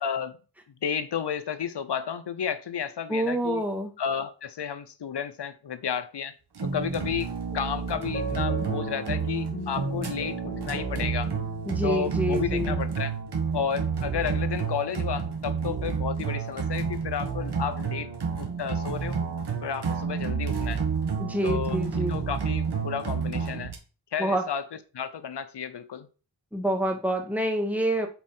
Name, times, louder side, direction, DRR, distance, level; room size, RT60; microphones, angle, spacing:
voice 1, 0.0-0.4 0.8-3.6 4.0-6.3 6.6-10.4 10.6-11.3 11.8-13.1 13.5-18.1 18.4-19.2 19.6-20.8 21.4-23.7 24.1-26.1, left 7 dB, 85° left, 0.8 m, -32 dB
voice 2, 3.1-3.9 11.6-12.8 21.2-22.2 24.2-24.4 26.5-28.1, right 1 dB, 5° right, 1.8 m, -27 dB
sound 1, 6.6-23.8, right 6 dB, 75° right, 1.5 m, -30 dB
sound 2, 7.5-12.4, equal, 30° left, 1.1 m, -38 dB
8.3 x 4.3 x 4.4 m
cardioid pair, 55°, 40 cm